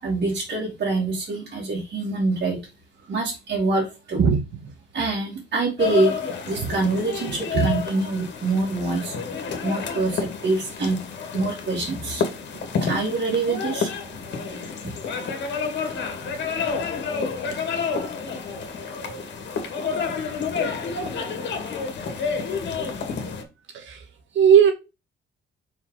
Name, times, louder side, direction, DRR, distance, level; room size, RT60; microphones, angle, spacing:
voice 1, 0.0-2.6 3.1-4.2 4.9-9.1 9.6-11.0 11.3-12.2 12.8-13.9, right 3 dB, 60° right, 2.8 m, -25 dB
voice 2, 4.2-4.7 6.6-6.8 7.5-7.7 14.5-14.7 16.2-16.4 23.7-24.0 24.3-24.7, right 7 dB, 75° right, 1.9 m, -19 dB
sound 1, 5.8-23.4, left 5 dB, 60° left, 2.0 m, -29 dB
5.2 x 5.0 x 5.0 m
cardioid pair, 90°, 20 cm